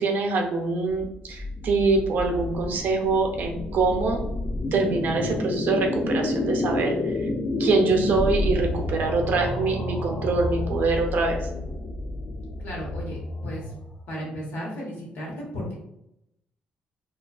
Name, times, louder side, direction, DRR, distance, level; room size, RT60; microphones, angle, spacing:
voice 1, 0.0-4.2 4.7-7.1 7.6-11.5, right 3 dB, 60° right, 2 dB, 0.4 m, -24 dB
sound 1, 0.9-14.1, left 2 dB, 30° left, 0.3 m, -30 dB
voice 2, 7.0-7.4 12.6-13.7 14.1-15.7, equal, 70° left, -3 dB, 1.0 m, -35 dB
2.4 x 2.2 x 2.3 m, 0.80 s
cardioid pair, 135°, 4 cm